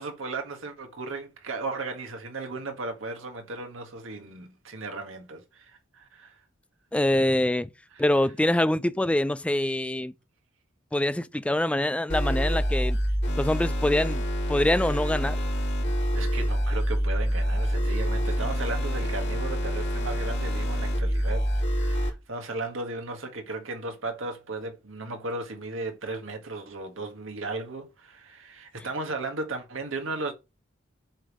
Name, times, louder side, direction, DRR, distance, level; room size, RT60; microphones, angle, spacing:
voice 1, 0.0-6.4 7.9-8.0 16.1-30.3, right 3 dB, 85° right, 1.6 m, -36 dB
voice 2, 6.9-7.7 8.0-10.1 10.9-13.0 13.4-14.2 14.5-15.4, left 1 dB, 5° left, 0.3 m, -24 dB
sound 1, 12.1-22.1, equal, 65° left, 3.0 m, -26 dB
7.5 x 3.6 x 6.1 m
head